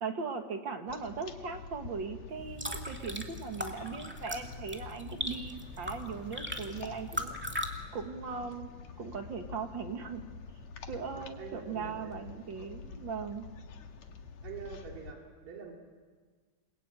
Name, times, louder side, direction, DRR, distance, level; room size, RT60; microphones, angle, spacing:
voice 1, 0.0-7.4 7.9-8.7 9.0-10.2 10.9-13.5, right 5 dB, 40° right, 6 dB, 2.0 m, -39 dB
sound 1, 0.9-15.1, left 5 dB, 60° left, 2.7 m, -47 dB
sound 2, 2.3-7.7, equal, 5° right, 1.6 m, -39 dB
voice 2, 11.4-12.1 14.4-15.7, right 6 dB, 80° right, 0 dB, 4.5 m, -45 dB
29.0 x 21.5 x 9.1 m, 1.5 s
omnidirectional pair, 3.8 m